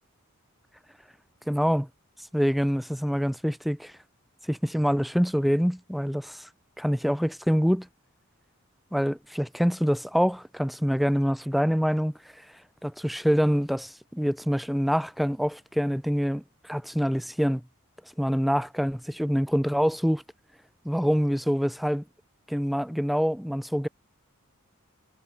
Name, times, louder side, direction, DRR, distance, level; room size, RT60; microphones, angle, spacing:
voice 1, 1.5-1.9 2.3-3.9 4.5-6.5 6.8-7.9 8.9-12.1 12.8-17.6 18.2-20.2 20.8-22.0 22.5-23.9, equal, ahead, 0.6 m, -25 dB
head